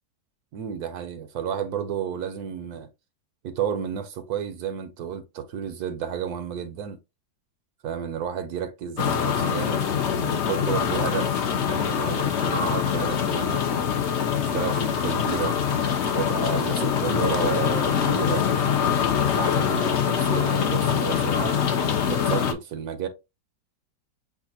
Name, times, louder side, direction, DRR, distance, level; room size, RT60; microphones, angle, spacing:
voice 1, 0.5-2.9 3.4-7.0 7.8-13.7 14.5-15.5 16.1-19.1 19.3-21.6 22.1-23.1, right 8 dB, 70° right, 1.1 m, -32 dB
sound 1, 9.0-22.5, left 7 dB, 60° left, 0.7 m, -24 dB
7.2 x 2.4 x 2.7 m
omnidirectional pair, 1.8 m